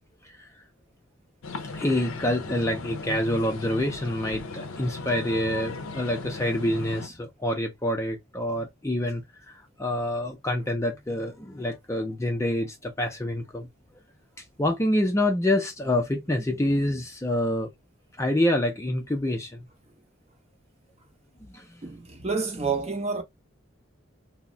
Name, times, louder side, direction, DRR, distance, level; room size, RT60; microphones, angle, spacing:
sound 1, 1.4-7.1, left 3 dB, 80° left, 0.5 m, -37 dB
voice 1, 1.7-13.7 14.6-17.7 18.2-19.7 21.4-21.8, left 1 dB, 15° left, 0.4 m, -27 dB
voice 2, 21.8-23.2, right 4 dB, 30° right, 0.6 m, -29 dB
2.3 x 2.0 x 3.7 m
head